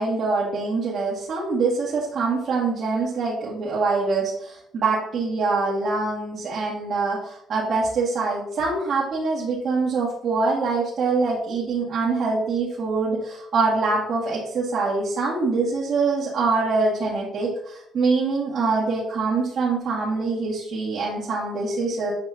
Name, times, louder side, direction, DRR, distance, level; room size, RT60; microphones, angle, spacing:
voice 1, 0.0-22.1, right 4 dB, 65° right, -8 dB, 2.3 m, -24 dB
8.7 x 5.4 x 3.0 m, 0.72 s
cardioid pair, 90°, 0 cm